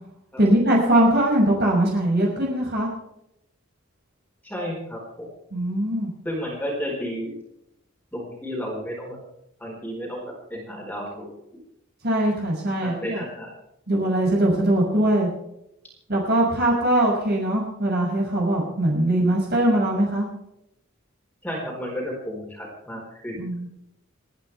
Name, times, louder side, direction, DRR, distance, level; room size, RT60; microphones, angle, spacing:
voice 1, 0.4-2.9 5.5-6.1 12.0-13.2 13.9-15.3 16.1-20.3 23.4-23.7, right 1 dB, 55° right, -2 dB, 6.1 m, -21 dB
voice 2, 4.4-5.3 6.2-7.3 8.1-9.2 9.6-11.3 12.8-13.5 21.4-23.7, equal, 10° left, -3 dB, 4.5 m, -32 dB
29.5 x 10.5 x 3.4 m, 0.81 s
head